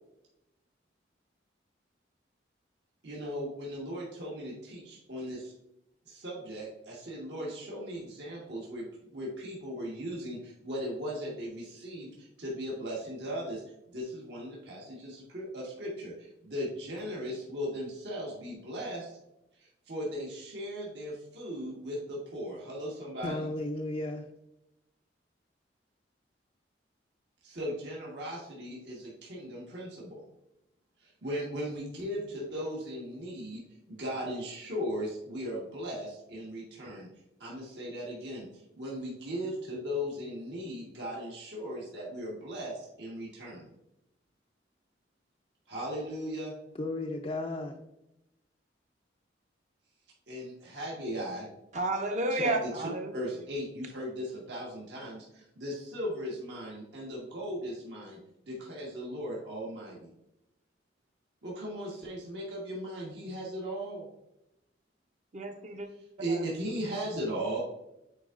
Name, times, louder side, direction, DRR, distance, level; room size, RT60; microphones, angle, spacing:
voice 1, 3.0-5.5 6.0-13.6 13.9-19.2 19.6-23.5 27.4-30.2 31.0-37.1 37.4-43.7 45.7-46.5 50.3-51.5 52.3-58.2 58.5-60.1 61.4-64.1 66.2-67.6, equal, 65° right, 1.5 m, -37 dB
voice 2, 23.2-24.3 46.8-47.8, left 2 dB, 30° left, 0.4 m, -34 dB
voice 3, 51.7-53.1 65.3-65.9 66.3-66.4, right 2 dB, 40° right, 0.8 m, -31 dB
8.3 x 4.6 x 2.5 m
head